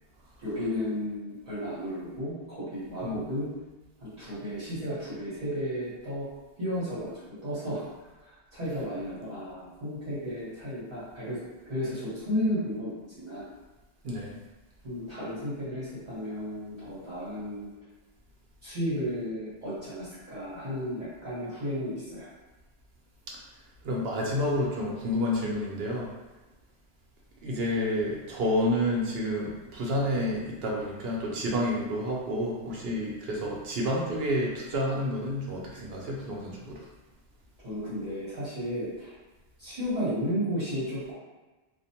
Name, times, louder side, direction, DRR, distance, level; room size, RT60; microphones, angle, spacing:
voice 1, 0.4-3.5 4.0-6.3 6.6-7.1 7.4-7.8 8.2-11.4 11.6-13.4 14.8-17.7 18.6-22.3 37.6-39.1 39.6-41.1, equal, 40° right, -14 dB, 1.0 m, -33 dB
voice 2, 14.0-14.4 23.8-26.1 27.4-36.9, left 1 dB, 70° right, -2 dB, 0.8 m, -29 dB
2.4 x 2.1 x 2.8 m, 1.2 s
omnidirectional pair, 1.1 m